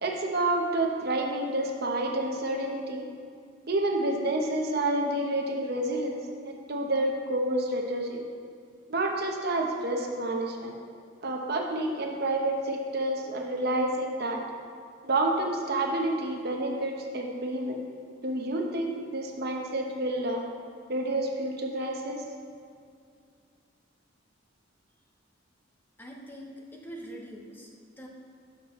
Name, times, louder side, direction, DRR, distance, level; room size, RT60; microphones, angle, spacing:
voice 1, 0.0-3.0 3.7-6.2 6.4-8.2 8.9-10.7 11.2-14.4 15.0-17.8 18.2-20.4 20.9-22.2, right 1 dB, 55° right, 1 dB, 0.9 m, -29 dB
voice 2, 26.0-28.1, equal, 10° left, -1 dB, 0.8 m, -44 dB
11.0 x 6.0 x 3.1 m, 2.3 s
head